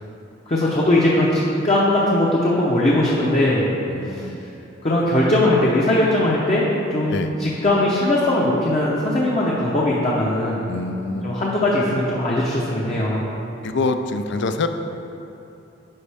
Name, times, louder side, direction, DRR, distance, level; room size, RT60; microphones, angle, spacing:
voice 1, 0.5-3.6 4.0-4.3 4.8-6.6 6.9-10.6 11.2-13.2, left 1 dB, 35° left, -5 dB, 0.7 m, -20 dB
voice 2, 3.9-4.4 7.1-7.3 10.7-11.3 13.6-14.7, left 3 dB, 60° left, 8 dB, 0.4 m, -25 dB
9.9 x 5.3 x 3.4 m, 2.9 s
head